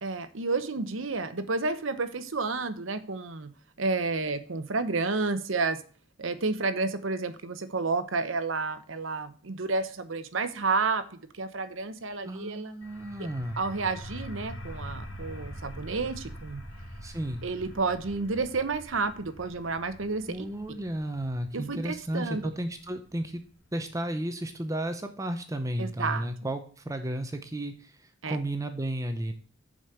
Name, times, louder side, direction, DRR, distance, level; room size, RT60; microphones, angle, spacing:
voice 1, 0.0-3.5 3.8-5.8 6.2-11.0 11.4-12.7 13.2-13.3 13.6-16.6 17.4-20.5 21.5-22.4 25.8-26.3 28.2-28.4, right 3 dB, 80° right, 12 dB, 0.9 m, -30 dB
voice 2, 12.2-13.6 17.0-17.4 20.2-23.4 23.7-29.3, right 1 dB, 15° right, 7 dB, 0.7 m, -33 dB
sound 1, 12.8-24.3, equal, 85° left, 2.9 m, -44 dB
7.4 x 5.1 x 6.8 m, 0.42 s
head